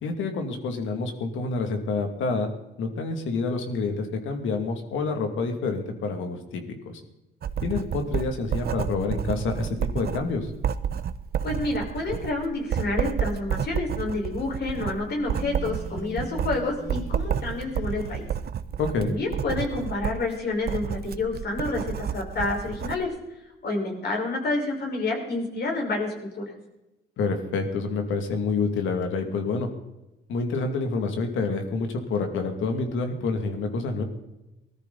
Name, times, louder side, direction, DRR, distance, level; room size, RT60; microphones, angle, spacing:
voice 1, 0.0-2.5 2.8-7.0 7.6-10.5 18.8-19.1 27.2-29.7 30.3-34.0, left 4 dB, 80° left, 5 dB, 2.6 m, -28 dB
Writing, 7.4-23.0, right 8 dB, 55° right, 0.9 m, -30 dB
voice 2, 11.4-18.2 19.1-23.1 23.6-26.5, left 2 dB, 55° left, 1 dB, 5.4 m, -29 dB
Telephone, 15.2-18.4, left 1 dB, 35° left, 7.0 m, -43 dB
20.0 x 13.5 x 4.2 m, 0.97 s
cardioid pair, 90°, 20 cm